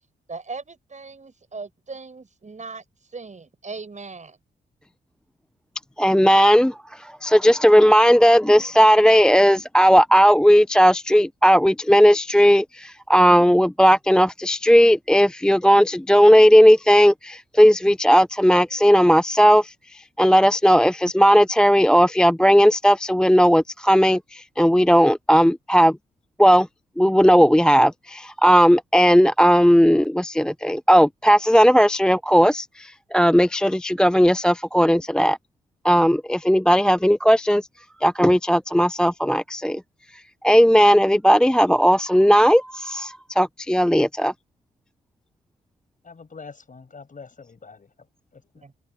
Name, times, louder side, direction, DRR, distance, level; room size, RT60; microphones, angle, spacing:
voice 1, 0.3-2.8 3.1-4.4 48.6-48.7, right 4 dB, 40° right, 7.8 m, -38 dB
voice 2, 6.0-26.0 26.4-26.7 27.0-35.4 35.8-37.7 38.0-39.8 40.1-44.3, equal, 5° left, 0.4 m, -16 dB
voice 3, 46.0-47.9 48.3-48.6, left 4 dB, 40° left, 5.8 m, -44 dB
supercardioid pair, 50°, 20 cm